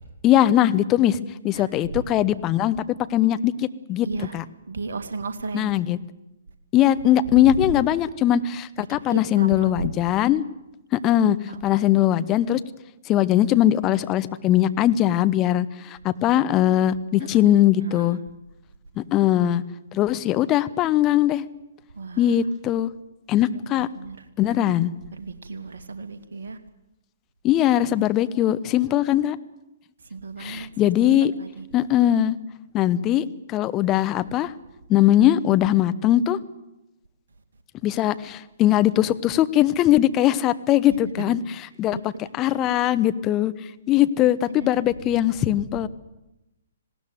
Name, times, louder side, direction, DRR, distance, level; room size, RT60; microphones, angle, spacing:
voice 1, 0.2-1.2 1.4-2.8 3.1-3.5 3.9-4.4 5.5-6.0 6.7-10.4 10.9-11.4 11.6-12.6 13.1-18.2 19.0-19.6 19.9-21.4 22.2-22.9 23.3-23.9 24.4-24.9 27.4-29.4 30.4-31.3 31.7-32.4 32.7-34.5 34.9-36.4 37.8-41.4 41.8-42.0 42.3-43.5 43.9-45.9, left 12 dB, 25° left, 14 dB, 1.0 m, -20 dB
voice 2, 4.0-4.4 4.7-5.7 7.2-7.4 9.1-9.9 11.5-11.8 17.1-17.3 17.8-18.2 21.9-22.3 23.8-24.2 25.1-26.6 30.1-30.9 31.4-31.7 40.8-41.4 41.9-42.0 42.5-42.6 44.2-44.7, right 4 dB, 60° right, 8 dB, 2.4 m, -35 dB
19.5 x 18.0 x 9.4 m, 0.93 s
figure-of-eight pair, 125°, 0 cm